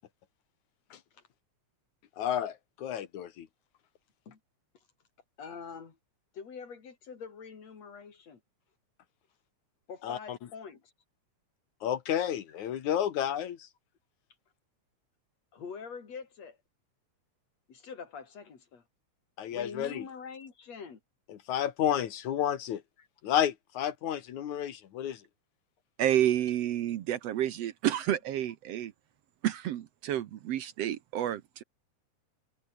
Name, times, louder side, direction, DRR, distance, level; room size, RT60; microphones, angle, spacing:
voice 1, 2.2-3.5 10.0-10.4 11.8-13.6 19.4-20.0 21.5-22.8 23.2-25.2, left 10 dB, 80° left, 3.0 m, -31 dB
voice 2, 5.4-6.0 6.3-8.4 9.9-10.9 15.5-16.6 17.7-18.8 19.5-21.0 23.0-23.1, left 6 dB, 60° left, 4.5 m, -44 dB
voice 3, 26.0-28.9 29.4-31.6, right 11 dB, 65° right, 1.9 m, -30 dB
omnidirectional pair, 3.3 m